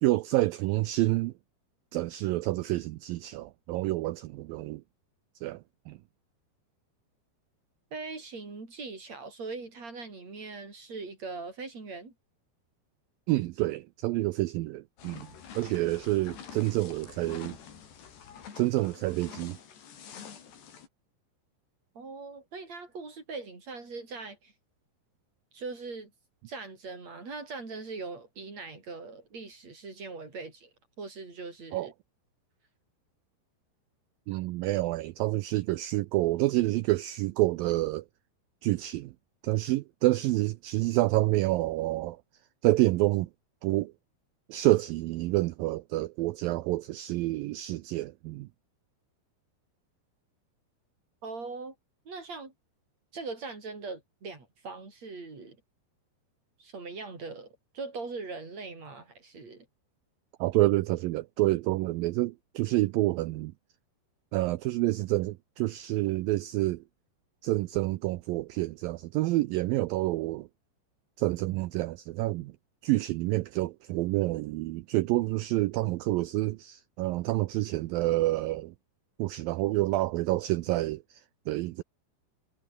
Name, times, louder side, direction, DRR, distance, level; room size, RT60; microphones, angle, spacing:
voice 1, 0.0-1.3 1.9-4.8 5.4-6.0 13.3-15.3 15.6-17.6 18.6-19.6 31.7-31.9 34.3-38.1 38.6-39.1 39.4-42.2 42.6-43.3 43.6-43.9 44.5-48.5 60.4-63.5 64.3-66.8 67.4-70.5 71.2-72.5 72.8-78.7 79.2-81.8, right 18 dB, 85° right, 2.0 m, -28 dB
voice 2, 7.9-12.1 22.0-24.5 25.5-26.1 26.5-30.7 31.0-31.9 51.2-51.7 52.1-52.5 53.1-55.6 56.6-59.7, right 4 dB, 40° right, 7.5 m, -41 dB
sound 1, 15.0-20.9, left 7 dB, 80° left, 5.9 m, -47 dB
omnidirectional pair, 4.9 m